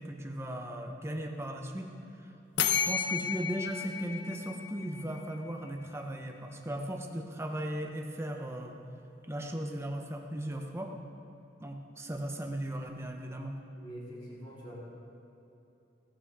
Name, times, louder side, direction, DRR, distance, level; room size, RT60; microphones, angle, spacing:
voice 1, 0.0-1.9 2.2-2.3 2.7-8.8 9.3-10.9 11.6-13.6, right 1 dB, 15° right, 2 dB, 1.2 m, -37 dB
sound 1, 2.6-5.3, left 7 dB, 90° left, 0.8 m, -32 dB
voice 2, 13.8-14.8, equal, 25° left, -6 dB, 4.1 m, -45 dB
17.0 x 15.5 x 3.8 m, 3.0 s
head